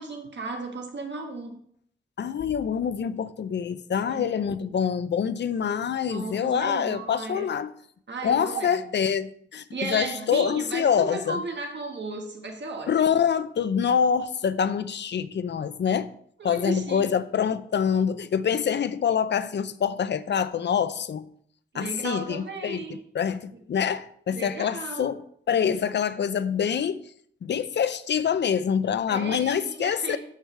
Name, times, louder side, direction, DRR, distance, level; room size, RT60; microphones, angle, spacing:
voice 1, 0.0-1.6 4.1-4.6 6.1-7.5 8.1-8.8 9.7-12.9 16.4-17.1 21.7-23.0 23.5-23.6 24.3-25.2 29.1-30.2, right 3 dB, 65° right, 1.5 m, -35 dB
voice 2, 2.2-7.7 8.2-11.4 12.9-16.1 16.4-21.3 21.7-22.8 23.1-25.2 25.5-27.0 27.4-30.2, left 7 dB, 60° left, 0.5 m, -25 dB
13.0 x 4.7 x 3.3 m
wide cardioid pair, 120°, 20 cm